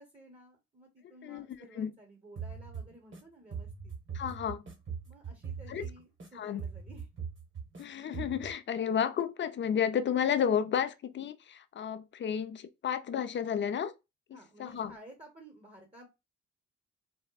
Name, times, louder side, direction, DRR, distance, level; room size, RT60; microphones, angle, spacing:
voice 1, 0.0-3.9 5.0-7.1 14.3-16.1, right 1 dB, 20° right, 1.0 m, -54 dB
sound 1, 2.4-3.2 3.5-6.3 6.6-7.8 8.1-8.5, right 6 dB, 40° right, 1.3 m, -41 dB
voice 2, 4.1-4.6 5.7-5.8 6.3-6.6 7.8-13.9 14.3-14.9, left 8 dB, 40° left, 0.4 m, -32 dB
4.2 x 2.0 x 2.3 m
cardioid pair, 90°, 30 cm